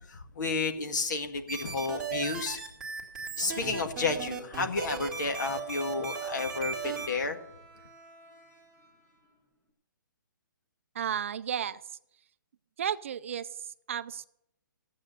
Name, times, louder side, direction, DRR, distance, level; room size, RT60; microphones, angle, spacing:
voice 1, 0.1-2.6 3.4-7.4, left 4 dB, 60° left, 6 dB, 1.9 m, -31 dB
sound 1, 1.5-7.1, right 6 dB, 5° right, 2.3 m, -36 dB
Bowed string instrument, 4.7-9.7, right 1 dB, 15° left, 2.3 m, -53 dB
voice 2, 10.9-12.0 12.8-14.3, right 8 dB, 40° right, 15 dB, 0.5 m, -34 dB
15.0 x 8.5 x 6.7 m, 0.76 s
hypercardioid pair, 170°, 11 cm